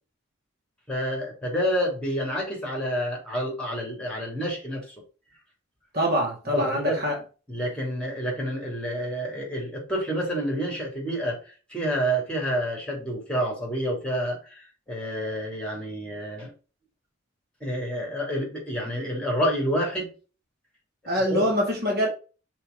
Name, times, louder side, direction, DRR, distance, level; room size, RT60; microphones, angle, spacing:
voice 1, 0.9-4.8 6.5-7.0 7.5-16.5 17.6-20.1 21.3-21.5, equal, 5° left, 3.0 m, -28 dB
voice 2, 5.9-7.2 21.1-22.1, equal, 50° right, 2.3 m, -24 dB
5.6 x 4.5 x 5.3 m
head